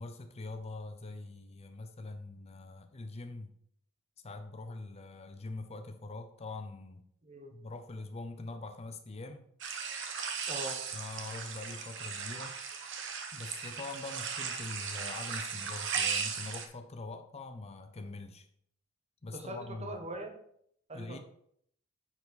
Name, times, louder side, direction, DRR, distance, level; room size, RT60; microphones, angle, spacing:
voice 1, 0.0-3.5 4.2-7.0 7.5-9.5 10.9-12.6 13.3-18.5 19.2-20.0 20.9-21.2, left 3 dB, 30° left, 7 dB, 0.5 m, -43 dB
sound 1, 9.6-16.7, right 6 dB, 60° right, 1.0 m, -37 dB
voice 2, 10.5-10.8 19.3-20.4 20.9-21.2, right 1 dB, 30° right, 4 dB, 1.2 m, -41 dB
9.6 x 4.6 x 4.0 m, 0.68 s
head